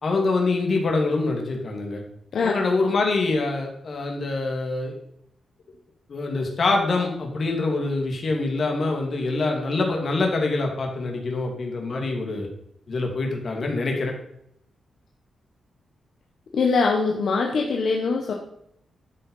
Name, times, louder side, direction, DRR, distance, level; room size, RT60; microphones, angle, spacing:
voice 1, 0.0-2.0 2.4-4.9 6.1-12.5 12.9-14.1, left 3 dB, 40° left, 1 dB, 2.7 m, -25 dB
voice 2, 16.5-18.3, left 4 dB, 60° left, 0 dB, 1.4 m, -22 dB
12.5 x 6.7 x 5.7 m, 0.73 s
wide cardioid pair, 150°, 0 cm